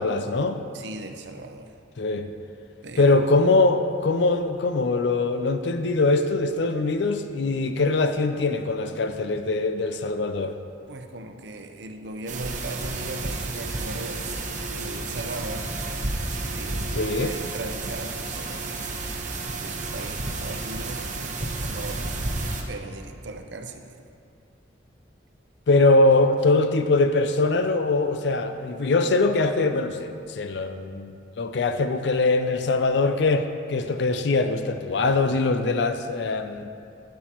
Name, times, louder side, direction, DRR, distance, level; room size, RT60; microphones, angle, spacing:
voice 1, 0.0-0.6 2.0-2.3 3.0-10.5 17.0-17.3 25.7-36.7, left 3 dB, 65° left, 8 dB, 0.5 m, -22 dB
voice 2, 0.7-1.7 2.8-3.3 10.9-15.7 16.2-18.9 19.6-22.1 22.7-24.0, right 2 dB, 70° right, 5 dB, 0.7 m, -38 dB
sound 1, 12.3-22.6, right 2 dB, 40° right, 1.0 m, -31 dB
12.0 x 9.4 x 3.0 m, 2.4 s
head